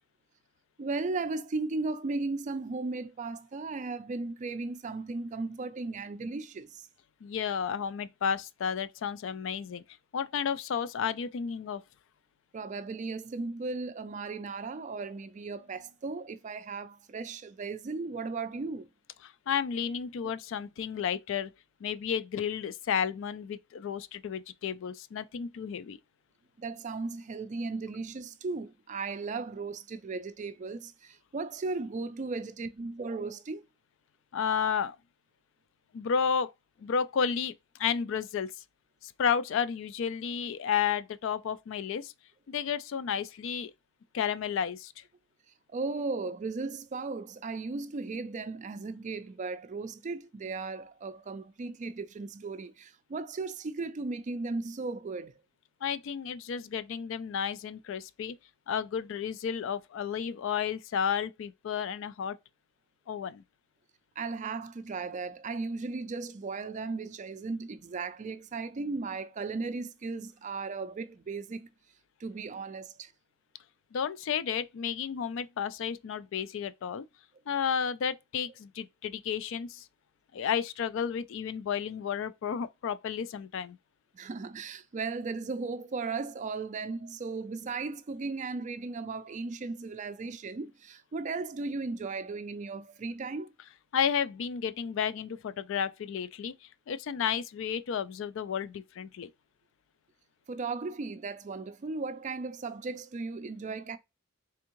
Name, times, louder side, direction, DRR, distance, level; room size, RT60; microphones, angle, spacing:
voice 1, 0.8-6.9 12.5-18.9 26.6-33.6 45.7-55.4 64.2-71.7 72.2-73.1 84.1-93.5 100.5-104.0, right 3 dB, 35° right, 0.4 m, -36 dB
voice 2, 7.2-9.8 10.1-11.8 19.5-21.5 21.8-26.0 34.3-35.0 35.9-36.5 36.8-37.5 37.8-38.5 39.0-42.1 42.5-43.7 44.1-45.0 55.8-58.4 58.7-62.4 63.1-63.4 73.9-77.0 77.5-79.9 80.3-83.8 93.9-96.5 96.9-99.3, left 7 dB, 65° left, 0.3 m, -32 dB
3.5 x 3.5 x 2.9 m
head